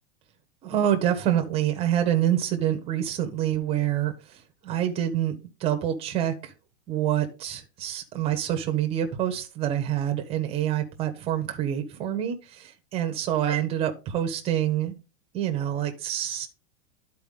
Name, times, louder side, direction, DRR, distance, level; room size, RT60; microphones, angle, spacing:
voice 1, 0.6-6.5 6.9-15.0 15.3-16.5, right 11 dB, 15° right, 6 dB, 0.8 m, -27 dB
11.0 x 4.5 x 3.6 m, 0.28 s
supercardioid pair, 175°, 34 cm